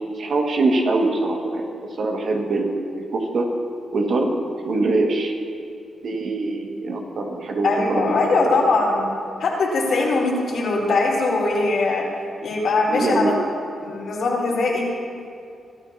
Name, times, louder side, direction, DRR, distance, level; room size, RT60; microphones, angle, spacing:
voice 1, 0.2-1.7 2.0-3.5 3.9-4.4 4.6-5.3 6.0-8.6 12.9-13.4, right 2 dB, 60° right, 1 dB, 2.0 m, -23 dB
voice 2, 7.6-9.1 9.4-12.0 12.4-13.3 13.8-14.9, left 3 dB, 70° left, -4 dB, 4.4 m, -21 dB
25.5 x 13.0 x 2.9 m, 2.5 s
cardioid pair, 95°, 0 cm